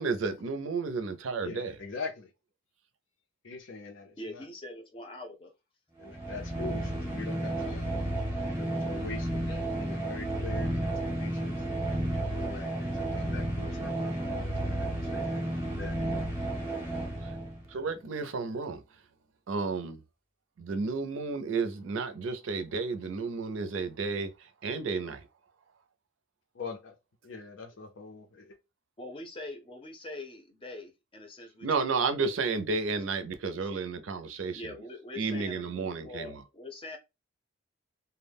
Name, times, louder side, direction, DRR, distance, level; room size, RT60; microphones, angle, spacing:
voice 1, 0.0-1.8 17.2-17.4 17.7-19.0 19.5-20.0 20.6-25.3 31.6-34.7 35.2-36.4, right 4 dB, 85° right, 0.5 m, -32 dB
voice 2, 1.4-2.3 3.4-4.5 6.0-8.0 8.6-11.6 12.1-16.0 26.5-27.0 27.2-28.6, left 4 dB, 75° left, 0.6 m, -43 dB
voice 3, 4.2-5.5 29.0-32.1 34.5-37.0, left 2 dB, 25° left, 0.6 m, -43 dB
sound 1, 6.0-17.7, right 1 dB, 15° right, 0.7 m, -32 dB
2.2 x 2.1 x 3.4 m
head